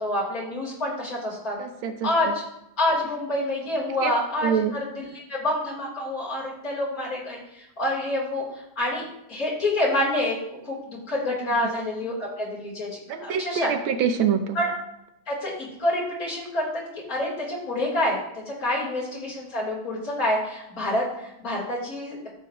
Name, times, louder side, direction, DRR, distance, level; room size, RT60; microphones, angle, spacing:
voice 1, 0.0-1.6 2.0-2.3 2.8-10.4 10.6-13.7 14.5-14.7 15.3-18.2 18.5-22.3, left 1 dB, 45° left, -6 dB, 3.9 m, -27 dB
voice 2, 1.6-2.1 4.0-4.1 4.4-4.7 11.6-11.7 13.1-14.6 18.8-18.9, right 7 dB, 80° right, 7 dB, 1.6 m, -25 dB
14.0 x 7.3 x 3.0 m, 0.83 s
omnidirectional pair, 2.2 m